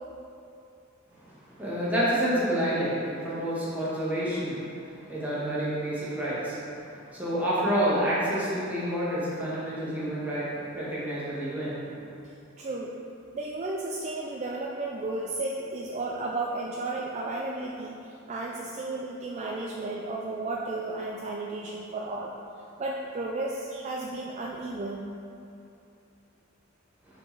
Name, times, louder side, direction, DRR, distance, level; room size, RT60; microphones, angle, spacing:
voice 1, 1.3-6.6 6.9-11.8, equal, 10° right, -9 dB, 1.5 m, -29 dB
voice 2, 12.6-12.9 13.3-22.3 22.8-25.1, right 2 dB, 35° right, -3 dB, 0.4 m, -33 dB
4.9 x 4.3 x 4.6 m, 2.6 s
head